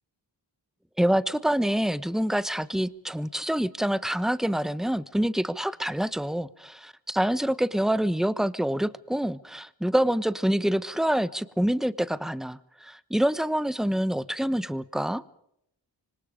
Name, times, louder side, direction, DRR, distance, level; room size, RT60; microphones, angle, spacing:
voice 1, 1.0-15.2, right 1 dB, ahead, 15 dB, 1.0 m, -26 dB
26.0 x 25.5 x 5.1 m, 0.75 s
wide cardioid pair, 115°, 43 cm